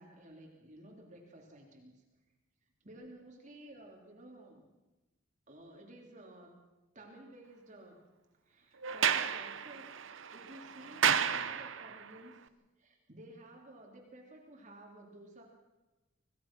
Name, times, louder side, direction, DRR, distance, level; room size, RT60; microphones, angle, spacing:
voice 1, 0.0-2.0 2.8-4.7 5.5-6.5 6.9-8.0 8.5-9.9 10.3-12.3 12.8-15.4, right 1 dB, 40° right, 0 dB, 3.3 m, -53 dB
Sliding door, 8.8-12.1, right 8 dB, 70° right, 0.9 m, -32 dB
26.0 x 17.0 x 6.1 m, 1.1 s
head